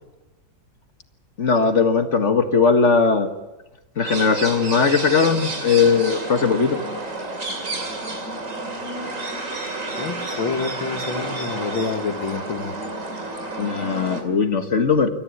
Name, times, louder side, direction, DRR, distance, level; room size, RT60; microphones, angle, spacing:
voice 1, 1.4-3.3 4.0-6.8 13.6-15.1, left 5 dB, 40° left, 8 dB, 1.6 m, -19 dB
sound 1, 4.0-14.2, right 2 dB, 40° right, 3.1 m, -30 dB
voice 2, 10.0-12.8, left 5 dB, 85° left, 7 dB, 2.5 m, -28 dB
26.0 x 14.0 x 9.9 m, 1.1 s
omnidirectional pair, 2.0 m